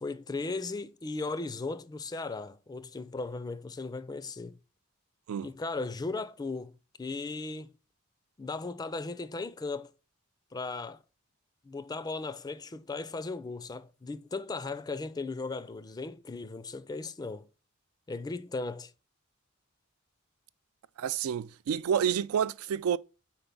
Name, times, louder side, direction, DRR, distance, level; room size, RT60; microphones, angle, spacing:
voice 1, 0.0-4.6 5.4-6.7 7.0-7.7 8.4-9.9 10.5-11.0 11.6-17.5 18.1-18.9, left 3 dB, 20° left, 0.3 m, -37 dB
voice 2, 21.0-23.0, right 8 dB, 85° right, 0.3 m, -29 dB
4.5 x 4.4 x 5.2 m
head